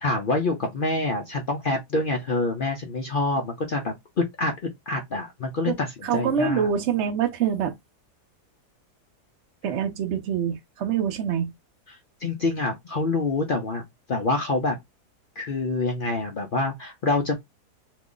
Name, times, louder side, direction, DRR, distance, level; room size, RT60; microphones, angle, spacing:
voice 1, 0.0-5.9 6.1-6.7 12.2-14.8 15.4-17.4, left 2 dB, 70° left, 0.5 m, -26 dB
voice 2, 6.0-7.7 9.6-11.5, right 8 dB, 60° right, 0.8 m, -25 dB
3.0 x 2.4 x 3.7 m
omnidirectional pair, 1.7 m